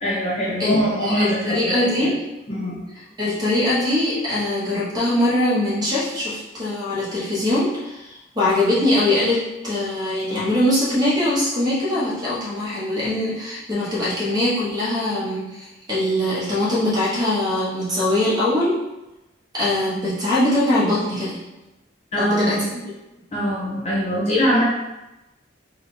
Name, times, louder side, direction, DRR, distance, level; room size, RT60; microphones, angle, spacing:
voice 1, 0.0-2.1 2.5-2.8 22.1-22.7 23.3-24.6, equal, 35° left, -6 dB, 1.1 m, -22 dB
voice 2, 1.0-2.1 3.2-18.8 19.5-21.4 22.2-22.6, left 1 dB, 20° right, -8 dB, 1.3 m, -22 dB
3.6 x 2.4 x 4.2 m, 1.0 s
head